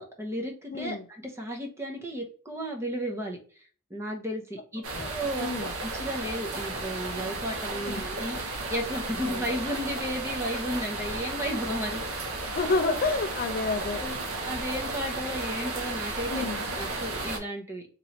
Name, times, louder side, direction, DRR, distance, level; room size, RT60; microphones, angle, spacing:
voice 1, 0.0-3.4 3.9-12.0 13.9-14.1 14.5-16.4 16.8-17.9, equal, 10° right, 0.6 m, -34 dB
voice 2, 0.7-1.0 4.9-5.1 5.4-5.7 7.8-8.1 9.2-9.4 12.5-14.0 16.3-16.6, left 3 dB, 40° left, 0.3 m, -29 dB
sound 1, 4.8-17.4, right 2 dB, 70° right, 0.8 m, -34 dB
3.0 x 2.9 x 2.6 m
head